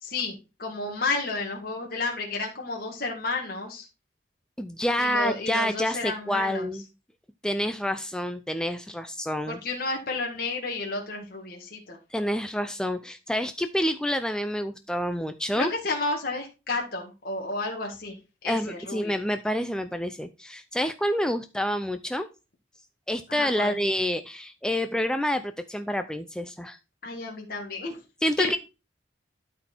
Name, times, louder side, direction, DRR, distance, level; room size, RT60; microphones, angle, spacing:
voice 1, 0.0-3.9 5.0-6.7 9.5-12.0 15.5-19.2 23.3-23.8 27.0-28.0 28.4-28.6, left 3 dB, 50° left, 0 dB, 1.8 m, -31 dB
voice 2, 4.6-6.8 7.4-9.6 12.1-15.7 18.5-22.3 23.1-26.8 28.2-28.6, equal, 5° left, 9 dB, 0.4 m, -28 dB
12.0 x 4.1 x 4.4 m, 0.29 s
head